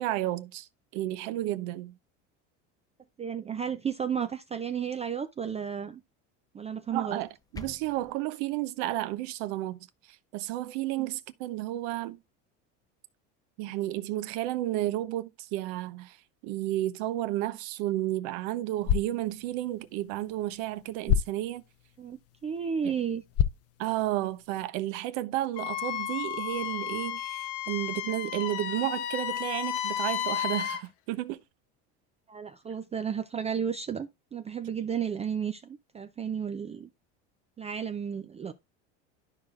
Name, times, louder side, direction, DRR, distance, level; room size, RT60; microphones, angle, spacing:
voice 1, 0.0-1.9 6.9-7.3 7.5-9.8 10.3-12.2 13.6-16.2 16.4-21.6 22.8-22.9 23.8-31.4, right 15 dB, 70° right, 0.9 m, -32 dB
voice 2, 3.2-6.0 6.5-7.2 10.9-11.1 22.0-23.2 32.3-36.9 37.6-38.5, right 7 dB, 20° right, 0.4 m, -33 dB
sound 1, 7.1-8.1, left 2 dB, 10° left, 0.7 m, -46 dB
sound 2, 18.7-24.7, left 10 dB, 45° left, 0.6 m, -33 dB
Wind instrument woodwind instrument, 25.6-30.8, left 10 dB, 75° left, 0.9 m, -33 dB
12.5 x 4.9 x 2.5 m
supercardioid pair, 105°, 35 cm